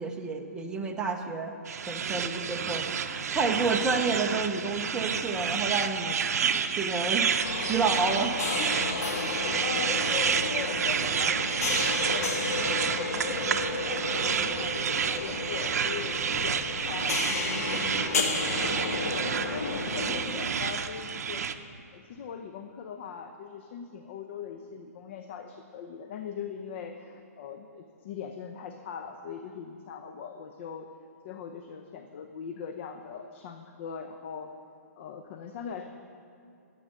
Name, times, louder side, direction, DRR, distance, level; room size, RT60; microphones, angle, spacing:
voice 1, 0.0-1.5 1.9-8.8, right 4 dB, 10° right, 2 dB, 0.7 m, -30 dB
sound 1, 1.7-21.5, right 7 dB, 65° right, 0.7 m, -30 dB
sound 2, 7.4-20.2, left 3 dB, 65° left, 1.6 m, -32 dB
voice 2, 9.6-18.8 19.1-21.5 21.9-30.9 31.2-34.5 35.0-35.9, left 7 dB, 45° left, 6 dB, 0.7 m, -41 dB
12.5 x 7.8 x 6.5 m, 2.6 s
hypercardioid pair, 150°, 9 cm